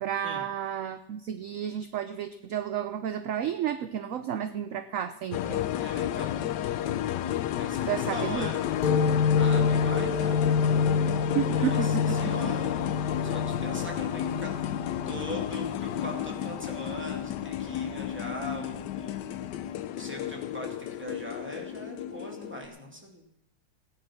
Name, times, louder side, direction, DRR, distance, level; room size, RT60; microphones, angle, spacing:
voice 1, 0.0-5.6 7.9-8.5 11.3-12.5, right 9 dB, 60° right, 10 dB, 0.9 m, -32 dB
sound 1, 5.3-22.7, left 11 dB, 80° left, 1.3 m, -32 dB
voice 2, 5.7-6.3 7.6-8.6 9.4-10.4 11.5-12.8 13.2-19.4 19.9-23.2, equal, 5° right, 0 dB, 2.6 m, -41 dB
sound 2, 8.8-16.1, left 5 dB, 60° left, 1.9 m, -27 dB
16.5 x 10.0 x 6.0 m, 0.78 s
omnidirectional pair, 1.9 m